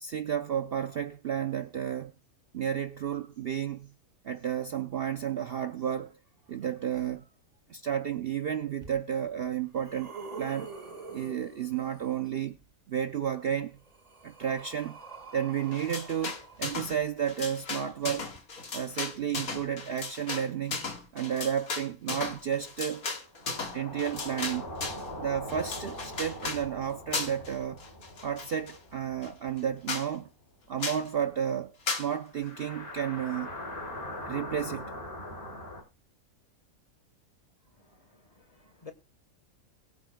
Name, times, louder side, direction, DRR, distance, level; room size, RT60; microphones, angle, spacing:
voice 1, 0.0-2.1 2.5-3.9 4.2-6.2 6.5-7.3 7.7-10.1 10.4-10.7 11.1-12.6 12.9-13.8 14.2-15.0 15.3-18.3 18.7-20.9 21.1-23.1 23.7-24.7 25.2-27.8 28.2-30.3 30.7-33.5 34.3-34.9, right 9 dB, 55° right, 0.7 m, -32 dB
sound 1, 8.8-8.9 9.5-12.2 13.4-17.3 18.3-18.4, right 4 dB, 30° right, 1.8 m, -46 dB
sound 2, 15.7-17.0 17.2-25.1 25.5-26.6 27.1-27.5 27.8-28.8 29.2-29.3 29.6-29.7 29.9-30.1 30.8-31.1 31.9-32.1, left 4 dB, 90° left, 2.2 m, -36 dB
sound 3, 23.3-29.9 30.2-30.3 32.3-35.8, left 1 dB, 45° left, 3.8 m, -42 dB
voice 2, 37.8-38.9, left 5 dB, 25° left, 1.3 m, -52 dB
21.5 x 8.3 x 2.2 m
omnidirectional pair, 1.5 m